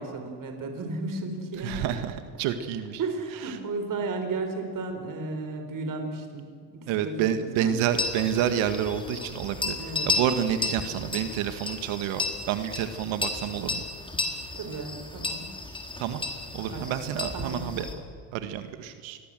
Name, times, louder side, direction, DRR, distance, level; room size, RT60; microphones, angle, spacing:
voice 1, 0.0-1.9 3.0-6.4 7.0-7.1 7.4-7.9 9.8-10.1 14.0-14.1 14.5-15.5 16.6-16.9 17.3-17.8, right 3 dB, 40° right, 5 dB, 4.2 m, -34 dB
voice 2, 1.6-3.0 3.4-3.6 6.9-9.8 10.0-13.8 16.0-16.2 16.5-17.9 18.3-19.2, right 9 dB, 70° right, 9 dB, 1.8 m, -29 dB
sound 1, 7.9-17.9, left 3 dB, 10° left, 4.1 m, -33 dB
27.0 x 21.5 x 7.7 m, 2.1 s
supercardioid pair, 100°, 49 cm